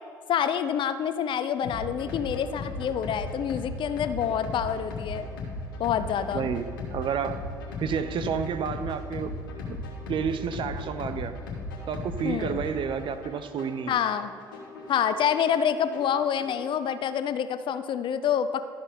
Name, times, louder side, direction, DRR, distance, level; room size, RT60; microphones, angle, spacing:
voice 1, 0.3-5.2 5.8-6.5 12.2-12.6 13.9-14.3 14.9-18.7, left 8 dB, 50° left, 12 dB, 0.5 m, -27 dB
sound 1, 1.6-16.6, left 2 dB, 85° left, 1.5 m, -37 dB
voice 2, 6.3-7.4 7.8-9.3 9.7-9.8 10.1-11.3 11.9-14.0, right 7 dB, 50° right, 11 dB, 0.6 m, -30 dB
12.5 x 4.4 x 5.4 m, 2.1 s
hypercardioid pair, 60°, 11 cm